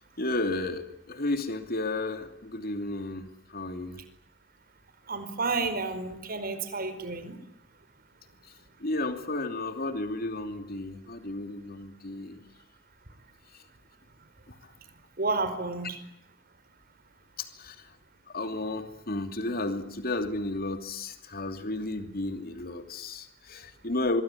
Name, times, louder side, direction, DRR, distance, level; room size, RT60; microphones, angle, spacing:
voice 1, 0.0-4.0 8.8-12.4 13.5-13.6 14.5-14.6 17.4-17.9 18.3-24.2, left 2 dB, 50° left, 8 dB, 2.8 m, -33 dB
voice 2, 5.1-7.4 15.2-16.0, right 3 dB, 50° right, 11 dB, 4.7 m, -31 dB
25.5 x 22.0 x 9.9 m, 0.77 s
head